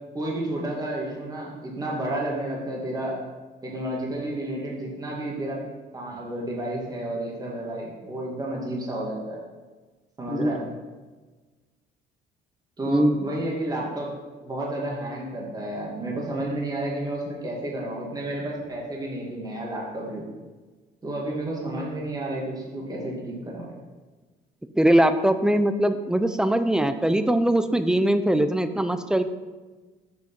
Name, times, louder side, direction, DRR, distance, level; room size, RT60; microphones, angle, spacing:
voice 1, 0.1-3.2 3.6-5.6 5.9-9.4 10.2-10.6 12.8-20.3 21.0-23.7, right 1 dB, 20° right, -3 dB, 1.9 m, -31 dB
voice 2, 10.3-10.6 12.9-13.2 24.8-29.2, right 1 dB, 5° right, 10 dB, 0.5 m, -21 dB
7.0 x 5.0 x 5.3 m, 1.3 s
cardioid pair, 110°, 17 cm